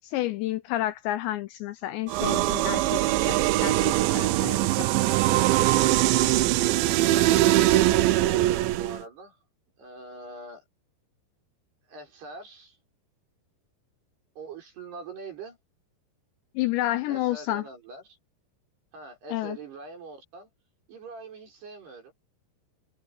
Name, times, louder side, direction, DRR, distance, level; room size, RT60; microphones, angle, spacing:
voice 1, 0.0-3.0 3.3-4.9 16.6-17.6 19.3-19.6, left 15 dB, 80° left, 2.6 m, -30 dB
sound 1, 2.1-9.0, right 16 dB, 80° right, 2.8 m, -22 dB
voice 2, 7.0-9.4 9.8-10.6 11.9-12.8 14.4-15.6 17.1-18.2 18.9-20.5 20.9-22.1, right 4 dB, 50° right, 8.1 m, -42 dB
omnidirectional pair, 5.9 m